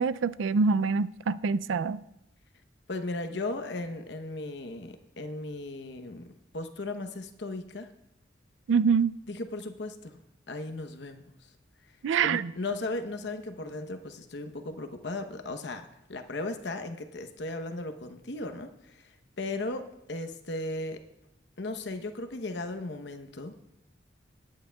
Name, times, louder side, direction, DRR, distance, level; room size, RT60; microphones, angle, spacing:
voice 1, 0.0-2.0 8.7-9.1 12.0-12.5, right 5 dB, 85° right, 0.4 m, -25 dB
voice 2, 2.9-6.3 6.5-7.9 9.3-11.2 12.2-19.1 19.4-21.0 21.6-23.5, left 2 dB, 65° left, 0.9 m, -36 dB
20.0 x 9.6 x 2.3 m
head